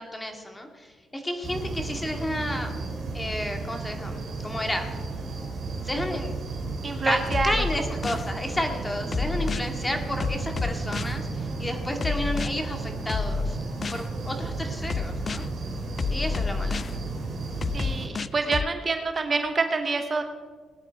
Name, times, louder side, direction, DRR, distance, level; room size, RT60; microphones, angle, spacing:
voice 1, 0.0-2.7 3.1-4.2 4.4-4.9 5.8-6.3 7.0-13.6 13.9-15.5 16.1-16.8 18.5-18.6, left 1 dB, 15° left, 4 dB, 2.2 m, -31 dB
sound 1, 1.4-18.1, right 3 dB, 55° right, 4.9 m, -33 dB
voice 2, 6.8-7.6 16.1-16.4 17.7-20.2, right 4 dB, 35° right, 6 dB, 1.1 m, -27 dB
sound 2, 7.3-8.3 9.1-9.7 10.2-11.2 12.0-12.5 13.1-14.1 14.9-15.5 16.0-16.9 17.6-18.7, left 5 dB, 40° left, 0.4 m, -29 dB
19.5 x 9.7 x 4.6 m, 1.5 s
cardioid pair, 90°, 0 cm